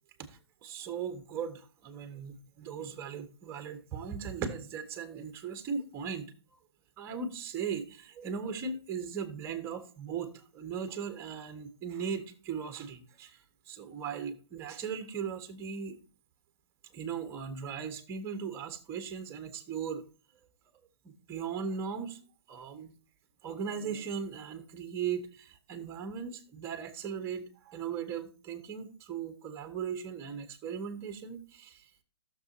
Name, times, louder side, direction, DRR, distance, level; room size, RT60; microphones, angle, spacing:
voice 1, 0.3-6.3 7.0-13.4 13.7-16.0 16.9-20.0 21.3-22.2 22.5-22.9 23.4-31.8, right 6 dB, 20° right, 1.3 m, -38 dB
14.0 x 7.0 x 2.7 m
hypercardioid pair, 140°, 14 cm